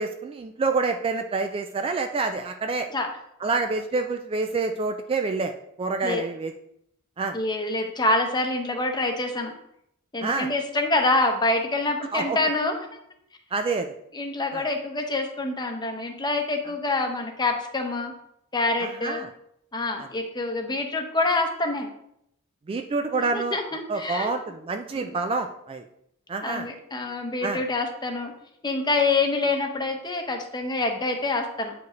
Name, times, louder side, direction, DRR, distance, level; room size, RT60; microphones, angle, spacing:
voice 1, 0.0-2.9 3.4-5.5 5.8-6.5 7.2-7.4 10.2-10.5 12.1-12.4 13.5-13.9 14.5-14.6 18.8-19.3 20.0-20.1 22.7-23.6 23.9-25.8 26.3-26.7 27.4-27.6, right 3 dB, 25° right, 6 dB, 0.3 m, -27 dB
voice 2, 7.3-9.5 10.1-12.9 14.1-18.1 18.5-19.3 19.7-21.9 23.1-24.3 24.9-25.2 26.4-28.3 28.6-31.7, left 2 dB, 20° left, 4 dB, 0.8 m, -26 dB
8.1 x 4.8 x 3.1 m, 0.75 s
head